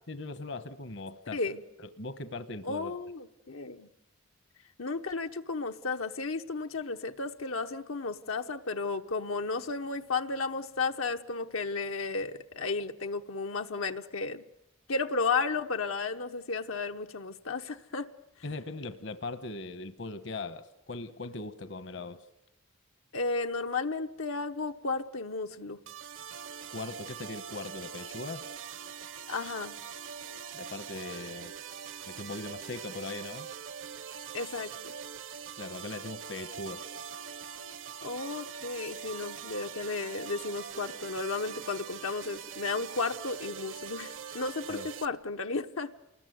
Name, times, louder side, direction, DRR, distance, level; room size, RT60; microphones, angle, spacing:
voice 1, 0.1-1.4 1.8-2.9 18.4-22.2 26.7-28.5 30.5-31.5 32.0-33.5 35.6-36.9 44.7-44.9, left 3 dB, 60° left, 10 dB, 1.1 m, -40 dB
voice 2, 2.6-3.9 4.8-14.4 14.9-18.1 23.1-25.8 29.3-29.8 34.3-34.9 38.0-45.9, left 4 dB, 85° left, 5 dB, 1.1 m, -33 dB
sound 1, 25.9-45.1, right 7 dB, 70° right, 0.9 m, -43 dB
29.0 x 20.5 x 9.4 m, 0.95 s
head